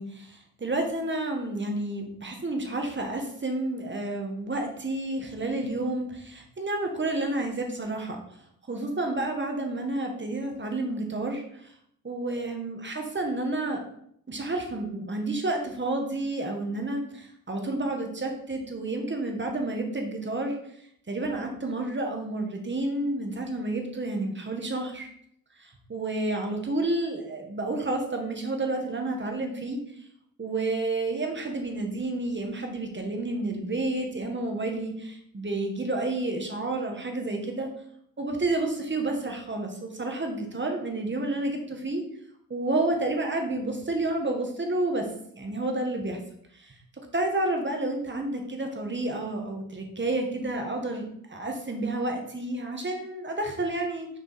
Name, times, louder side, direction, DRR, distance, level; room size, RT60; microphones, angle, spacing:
voice 1, 0.0-8.2 8.7-11.7 12.0-13.8 14.3-20.6 21.1-25.1 25.6-29.8 30.4-37.7 38.2-42.0 42.5-45.1 45.4-46.2 46.5-46.7 47.1-54.2, right 2 dB, 30° right, 2 dB, 1.6 m, -30 dB
6.3 x 4.9 x 4.2 m, 0.70 s
cardioid pair, 80°, 36 cm